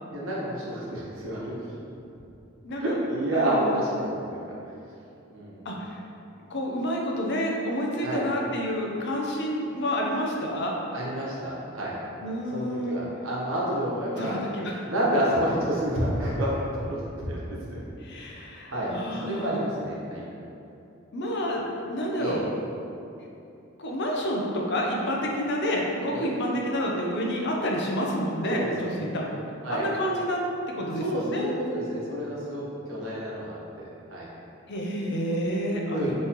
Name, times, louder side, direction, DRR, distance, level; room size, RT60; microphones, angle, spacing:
voice 1, 0.1-1.6 2.7-4.2 5.3-5.6 8.0-8.3 10.9-12.0 12.5-14.4 14.8-17.8 18.2-18.9 19.2-20.2 22.2-22.4 26.1-26.2 28.5-29.0 29.6-29.9 30.8-33.8 34.1-34.3 35.9-36.1, right 1 dB, 80° right, -6 dB, 1.2 m, -29 dB
voice 2, 2.6-3.0 3.3-3.8 5.6-6.0 6.5-10.7 12.2-13.0 14.2-14.9 18.0-19.7 21.1-21.6 21.9-22.5 23.8-29.3 29.7-30.4 30.7-31.5 34.7-36.1, equal, 60° left, -1 dB, 0.6 m, -29 dB
5.4 x 3.2 x 3.0 m, 2.8 s
head